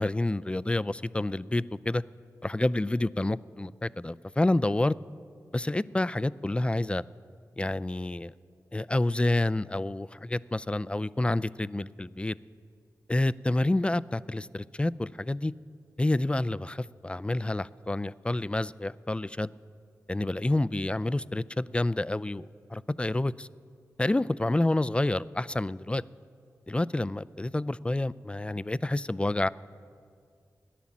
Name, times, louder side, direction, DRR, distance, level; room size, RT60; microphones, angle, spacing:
voice 1, 0.0-2.0 2.4-5.0 5.5-7.0 7.6-8.3 8.7-12.4 13.1-15.5 16.0-19.5 20.1-23.5 24.0-26.0 26.7-29.5, left 2 dB, 15° left, 19 dB, 0.3 m, -28 dB
14.5 x 10.5 x 7.3 m, 2.3 s
cardioid pair, 45°, 7 cm